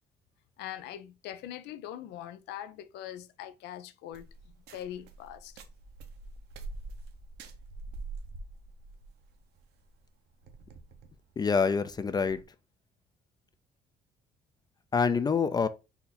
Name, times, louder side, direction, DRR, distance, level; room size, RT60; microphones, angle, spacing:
voice 1, 0.6-4.3 4.7-5.5, left 11 dB, 85° left, 0.5 m, -42 dB
sound 1, 4.1-12.4, right 3 dB, 80° right, 0.9 m, -46 dB
voice 2, 11.4-12.4 14.9-15.7, left 5 dB, 25° left, 0.4 m, -26 dB
4.2 x 2.7 x 3.9 m
cardioid pair, 110°, 17 cm